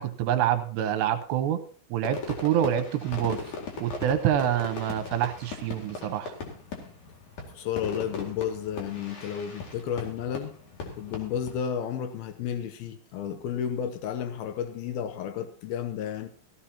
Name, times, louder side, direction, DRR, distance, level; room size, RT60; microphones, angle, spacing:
voice 1, 0.0-1.6 1.9-3.4 3.8-6.4, right 10 dB, 75° right, 2.7 m, -26 dB
Fireworks, 2.0-11.6, left 4 dB, 50° left, 3.1 m, -39 dB
voice 2, 7.5-10.5 11.0-16.3, left 8 dB, 90° left, 2.1 m, -32 dB
16.0 x 15.5 x 2.9 m
omnidirectional pair, 5.4 m